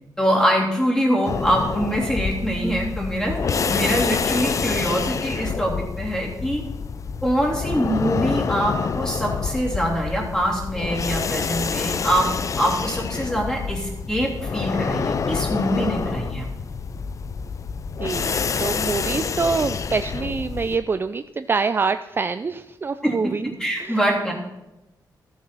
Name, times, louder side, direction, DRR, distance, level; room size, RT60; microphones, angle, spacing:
voice 1, 0.2-3.4 3.7-6.6 7.2-12.3 12.6-16.5 23.0-24.3, equal, 10° left, -2 dB, 3.1 m, -24 dB
sound 1, 1.2-20.8, left 5 dB, 45° left, 0.6 m, -27 dB
voice 2, 18.0-23.5 23.8-24.0, right 4 dB, 30° right, 10 dB, 0.4 m, -25 dB
14.5 x 7.2 x 6.1 m, 1.0 s
wide cardioid pair, 140°, 7 cm